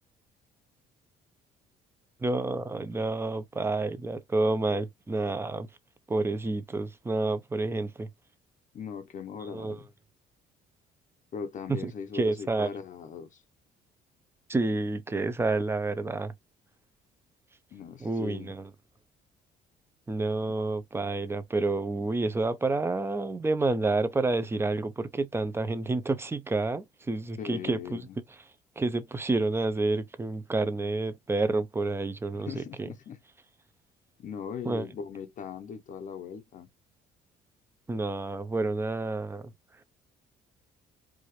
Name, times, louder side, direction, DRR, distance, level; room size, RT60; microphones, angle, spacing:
voice 1, 2.2-5.7 6.1-8.1 9.4-9.8 11.7-12.7 14.5-16.3 18.0-18.7 20.1-28.4 28.8-32.9 34.6-34.9 37.9-39.5, right 3 dB, 15° right, 0.6 m, -29 dB
voice 2, 8.7-9.9 11.3-13.4 17.7-18.5 27.4-28.2 32.5-33.2 34.2-36.7, left 6 dB, 50° left, 0.8 m, -39 dB
4.8 x 2.6 x 3.1 m
cardioid pair, 110°, 17 cm